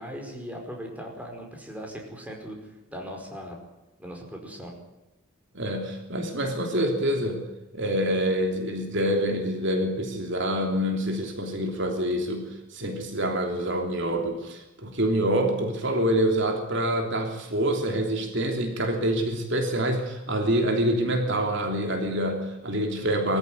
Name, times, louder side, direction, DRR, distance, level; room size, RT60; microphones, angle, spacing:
voice 1, 0.0-3.6 4.0-4.7, equal, 5° right, 1 dB, 5.1 m, -39 dB
voice 2, 5.5-7.4 7.7-23.4, right 1 dB, 55° right, 3 dB, 3.1 m, -26 dB
22.5 x 14.5 x 9.4 m, 1.0 s
head